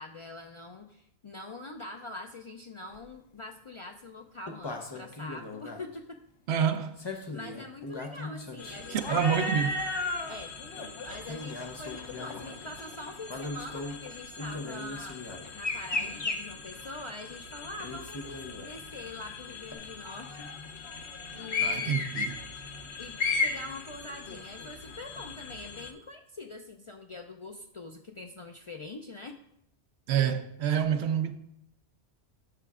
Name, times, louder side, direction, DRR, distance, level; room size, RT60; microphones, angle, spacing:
voice 1, 0.0-6.2 7.3-9.5 10.3-10.6 11.0-15.2 15.5-20.5 21.3-22.2 23.0-29.3, left 2 dB, 55° left, 0.3 m, -44 dB
sound 1, 2.9-3.0 4.5-5.8 7.0-10.3 10.8-10.9 11.2-12.7 13.3-13.9 14.4-16.4 17.8-18.9 19.7-19.8, left 2 dB, 25° left, 0.7 m, -36 dB
voice 2, 6.5-7.0 8.9-9.8 21.6-22.4 30.1-31.3, right 8 dB, 75° right, 0.9 m, -27 dB
sound 2, 8.6-25.9, left 5 dB, 80° left, 1.1 m, -38 dB
11.5 x 6.8 x 2.4 m
omnidirectional pair, 1.1 m